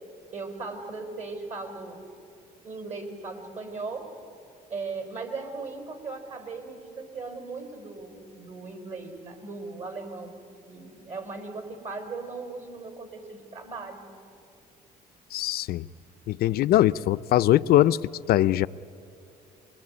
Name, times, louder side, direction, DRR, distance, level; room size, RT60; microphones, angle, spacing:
voice 1, 0.3-2.0 2.6-4.1 4.7-10.4 10.7-14.0, right 3 dB, 45° right, 7 dB, 4.6 m, -38 dB
voice 2, 15.3-15.9 16.3-18.0 18.3-18.7, left 13 dB, 65° left, 15 dB, 0.6 m, -21 dB
26.5 x 22.5 x 9.8 m, 2.6 s
cardioid pair, 110°, 17 cm